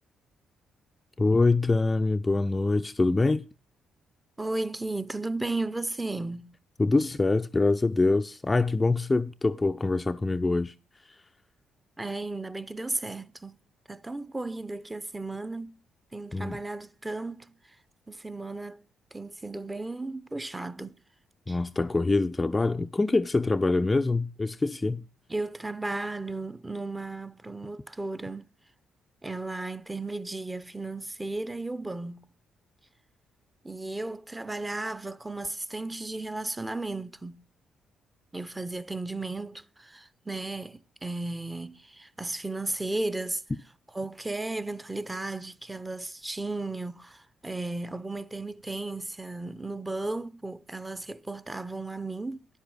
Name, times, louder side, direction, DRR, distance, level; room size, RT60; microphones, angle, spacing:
voice 1, 1.2-3.5 6.8-10.7 16.3-16.6 21.5-25.0, left 3 dB, 20° left, 0.4 m, -25 dB
voice 2, 4.4-6.6 12.0-13.6 13.9-15.8 16.1-17.5 18.1-18.8 19.1-21.0 21.5-21.6 25.3-28.5 29.2-32.2 33.6-37.4 38.3-43.4 43.9-52.5, right 2 dB, 15° right, 0.7 m, -35 dB
9.9 x 8.3 x 6.2 m
cardioid pair, 90°, 0 cm